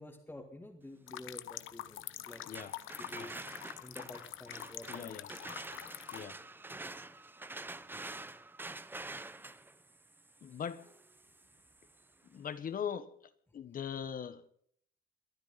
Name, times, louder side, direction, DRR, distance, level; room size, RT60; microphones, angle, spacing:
voice 1, 0.0-2.4 3.0-3.4 3.8-5.5 10.5-10.6, left 1 dB, 10° left, 2.2 m, -50 dB
sound 1, 1.1-6.2, left 14 dB, 75° left, 0.9 m, -46 dB
sound 2, 2.3-12.1, right 2 dB, 10° right, 0.6 m, -47 dB
voice 2, 4.9-5.3 6.1-6.4 10.4-10.8 12.3-13.1 13.5-14.4, left 8 dB, 45° left, 1.3 m, -40 dB
23.0 x 13.0 x 4.2 m
cardioid pair, 140°, 21 cm